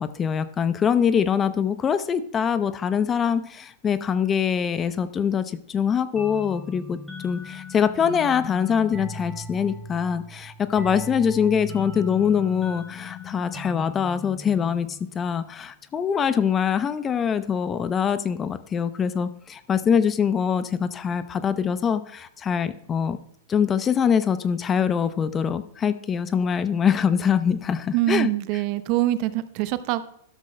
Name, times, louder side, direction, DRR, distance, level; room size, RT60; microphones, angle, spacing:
voice 1, 0.0-7.0 7.2-23.2 23.5-28.3, left 7 dB, 25° left, 13 dB, 0.6 m, -24 dB
sound 1, 6.2-15.5, left 2 dB, ahead, 4.8 m, -38 dB
voice 2, 27.9-30.0, right 15 dB, 45° right, 13 dB, 0.7 m, -24 dB
12.5 x 12.5 x 2.2 m, 0.69 s
figure-of-eight pair, 100°, 0 cm